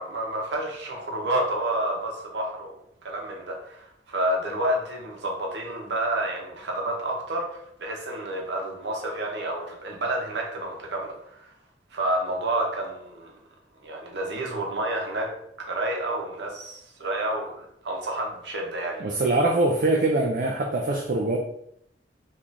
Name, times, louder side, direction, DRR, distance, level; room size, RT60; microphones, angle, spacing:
voice 1, 0.0-2.7 3.0-11.5 11.9-13.3 13.8-15.3 15.6-19.0, right 1 dB, 75° right, 0 dB, 0.9 m, -29 dB
voice 2, 19.0-21.4, right 2 dB, 50° right, 1 dB, 0.4 m, -23 dB
3.6 x 3.0 x 2.6 m, 0.74 s
head